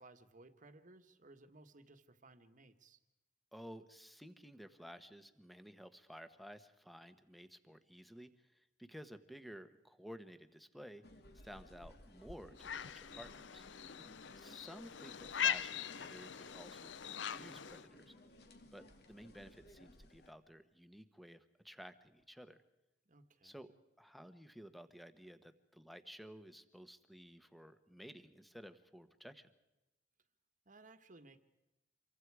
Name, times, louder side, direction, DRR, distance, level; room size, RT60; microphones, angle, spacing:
voice 1, 0.0-3.0 14.0-14.2 23.0-23.6 30.6-31.4, right 2 dB, 45° right, 9 dB, 1.5 m, -60 dB
voice 2, 3.5-11.1 11.4-13.6 14.4-18.1 18.7-22.6 23.4-23.7 24.0-29.5, equal, ahead, 10 dB, 1.3 m, -54 dB
sound 1, 11.0-20.3, left 1 dB, 60° left, 2.4 m, -59 dB
sound 2, 12.6-17.9, left 8 dB, 75° left, 0.7 m, -41 dB
27.5 x 24.0 x 4.9 m, 0.98 s
head